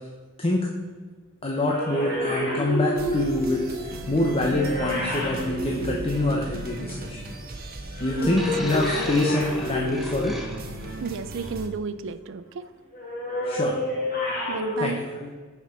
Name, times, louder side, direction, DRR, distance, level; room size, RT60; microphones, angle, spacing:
voice 1, 1.4-7.4 8.0-10.3 13.4-13.8 14.8-15.3, left 2 dB, 30° left, -1 dB, 0.9 m, -26 dB
sound 1, 1.7-6.7 7.9-10.5 12.9-14.7, left 1 dB, 45° left, 2.9 m, -30 dB
sound 2, 2.9-11.7, right 2 dB, 45° right, 1.1 m, -37 dB
sound 3, 8.4-10.9 11.8-12.0, equal, ahead, 0.9 m, -38 dB
voice 2, 11.0-12.7 14.5-15.0, right 5 dB, 60° right, 13 dB, 0.4 m, -32 dB
8.2 x 6.0 x 5.9 m, 1.4 s
head